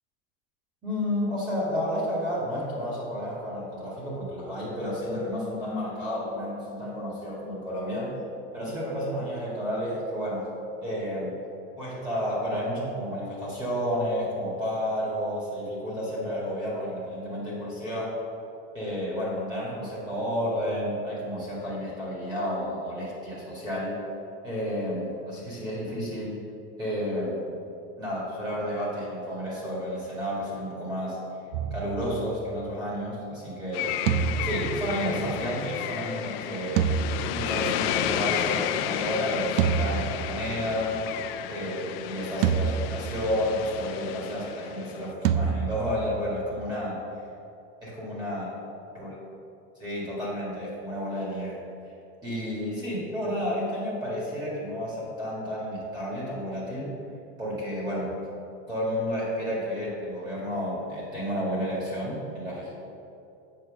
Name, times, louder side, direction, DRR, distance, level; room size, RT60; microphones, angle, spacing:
voice 1, 0.8-8.2 8.5-10.5 10.8-11.4 11.8-18.2 18.7-24.0 24.4-26.4 26.8-27.5 28.0-31.2 31.7-33.9 34.4-36.9 37.3-41.0 41.5-47.0 47.8-48.5 49.0-49.1 49.8-51.7 52.2-56.9 57.4-58.1 58.7-62.7, equal, 15° right, -6 dB, 1.9 m, -31 dB
sound 1, 31.5-32.8 34.1-35.8 36.8-38.1 39.6-40.9 42.4-43.6 45.2-46.7, right 7 dB, 60° right, 0.5 m, -29 dB
sound 2, 33.7-45.1, left 11 dB, 75° left, 0.5 m, -32 dB
7.6 x 4.8 x 6.4 m, 2.7 s
cardioid pair, 170°, 30 cm